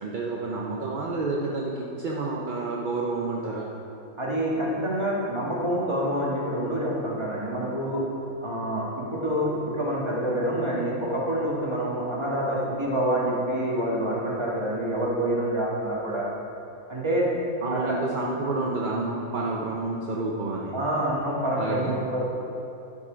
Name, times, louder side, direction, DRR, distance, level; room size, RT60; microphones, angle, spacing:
voice 1, 0.0-1.7 2.0-3.7 17.6-20.8 21.6-21.9, right 3 dB, 45° right, -3 dB, 0.7 m, -29 dB
voice 2, 4.2-8.0 8.4-16.2 16.9-17.3 17.7-18.0 20.7-22.2, right 1 dB, 20° right, -5 dB, 1.8 m, -27 dB
11.0 x 7.5 x 5.1 m, 2.9 s
omnidirectional pair, 1.7 m